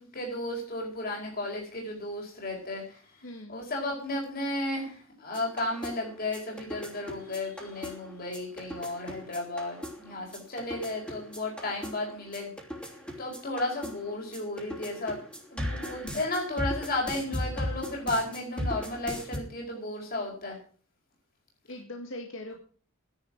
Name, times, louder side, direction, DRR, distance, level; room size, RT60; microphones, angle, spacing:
voice 1, 0.0-3.0 3.5-12.5 13.2-15.2 15.5-20.6, left 2 dB, 45° left, -1 dB, 4.7 m, -33 dB
voice 2, 3.2-3.6 16.1-16.2 21.7-22.5, left 1 dB, 65° left, 3 dB, 2.0 m, -40 dB
sound 1, 5.3-19.4, equal, 5° left, 3.1 m, -38 dB
13.0 x 10.5 x 6.0 m, 0.42 s
head